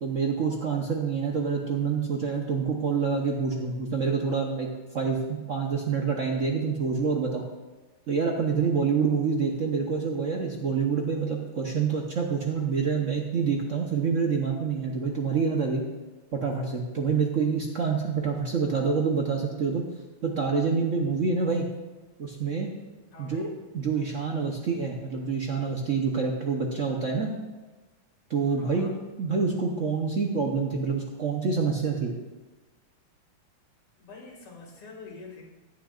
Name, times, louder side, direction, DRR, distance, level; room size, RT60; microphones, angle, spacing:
voice 1, 0.0-4.7 4.9-5.2 5.5-7.4 8.1-15.8 16.3-19.8 20.2-21.6 22.2-22.7 23.2-23.5 23.7-27.3 28.3-28.9 29.2-32.1, right 5 dB, 50° right, 0 dB, 0.9 m, -27 dB
voice 2, 23.1-23.5 28.5-28.9 34.0-35.4, left 3 dB, 90° left, -1 dB, 3.1 m, -45 dB
16.0 x 10.0 x 2.5 m, 1.2 s
omnidirectional pair, 2.4 m